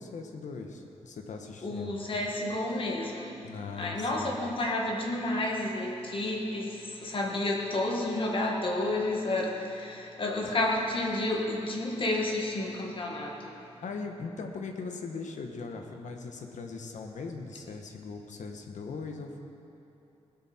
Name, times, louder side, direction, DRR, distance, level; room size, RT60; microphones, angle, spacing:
voice 1, 0.0-2.0 3.4-4.3 10.5-10.6 13.8-19.4, left 4 dB, 85° left, 4 dB, 1.2 m, -40 dB
voice 2, 1.6-3.3 3.8-13.5, left 2 dB, 45° left, -1 dB, 1.5 m, -31 dB
18.5 x 12.0 x 4.4 m, 2.9 s
wide cardioid pair, 160°, 12 cm